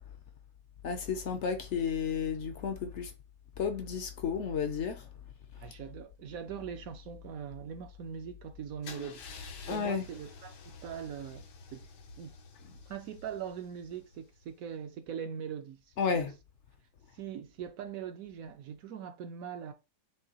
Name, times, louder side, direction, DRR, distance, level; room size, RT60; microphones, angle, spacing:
voice 1, 0.8-3.1 3.6-5.1 9.7-10.0 16.0-16.3, left 6 dB, 60° left, 0.7 m, -32 dB
voice 2, 5.6-9.2 9.7-11.9 12.2-12.4 12.9-16.3 17.1-19.7, right 8 dB, 65° right, 0.9 m, -41 dB
Car / Engine starting / Idling, 8.8-14.7, left 4 dB, 85° left, 1.5 m, -49 dB
6.6 x 2.7 x 2.8 m
omnidirectional pair, 1.8 m